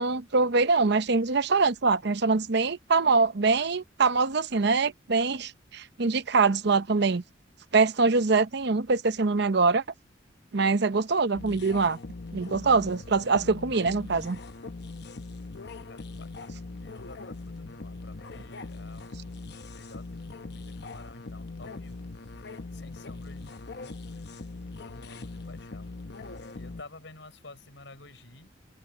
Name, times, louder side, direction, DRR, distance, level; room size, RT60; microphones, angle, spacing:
voice 1, 0.0-7.2 7.7-9.8 10.5-12.0 12.3-14.4, right 4 dB, 65° right, 0.8 m, -24 dB
sound 1, 11.3-26.8, left 3 dB, 60° left, 0.9 m, -41 dB
voice 2, 15.8-19.2 19.6-22.1 22.7-26.3 26.6-28.5, left 2 dB, 80° left, 5.2 m, -51 dB
open air
head